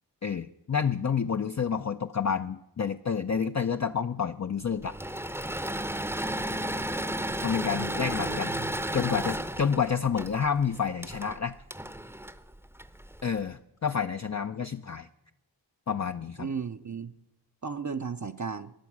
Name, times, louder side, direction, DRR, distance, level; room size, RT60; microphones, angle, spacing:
voice 1, 0.2-5.0 7.4-8.6 8.9-11.6 13.2-15.1 15.9-16.5, left 6 dB, 45° left, 7 dB, 0.5 m, -29 dB
Engine / Mechanisms, 4.8-13.2, right 1 dB, 5° right, 0.7 m, -33 dB
voice 2, 7.7-8.7 16.4-17.1 17.6-18.7, right 5 dB, 45° right, 7 dB, 0.6 m, -35 dB
19.5 x 7.1 x 6.0 m, 0.90 s
wide cardioid pair, 45°, 41 cm